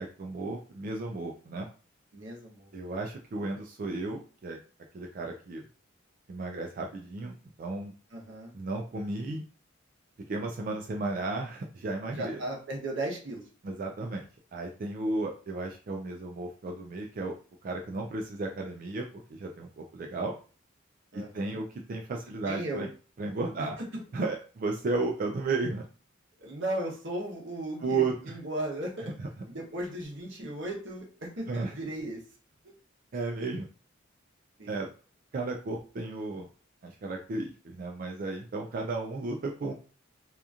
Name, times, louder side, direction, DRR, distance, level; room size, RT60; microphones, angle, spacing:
voice 1, 0.0-1.7 2.7-4.6 4.9-5.6 6.3-7.9 8.5-9.4 10.3-12.4 13.6-17.3 17.6-20.3 21.1-22.9 23.2-23.8 24.1-25.8 27.8-28.4 29.2-29.3 31.5-31.8 33.1-33.7 34.7-34.9 35.3-36.5 36.8-39.7, right 3 dB, 45° right, 1 dB, 0.3 m, -34 dB
voice 2, 2.1-2.7 8.1-8.5 12.2-13.4 21.1-21.6 22.5-22.8 26.4-28.0 28.3-29.1 29.5-32.2 34.6-34.8, right 1 dB, 60° right, -1 dB, 0.8 m, -36 dB
2.8 x 2.4 x 2.4 m, 0.38 s
head